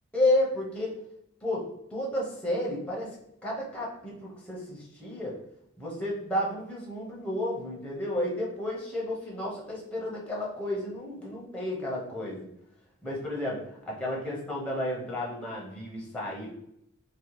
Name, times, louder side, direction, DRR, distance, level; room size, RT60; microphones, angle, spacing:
voice 1, 0.1-1.0 1.4-3.1 3.4-5.4 5.8-12.5 13.0-16.5, left 1 dB, 5° left, -4 dB, 0.5 m, -32 dB
2.7 x 2.0 x 2.9 m, 0.77 s
head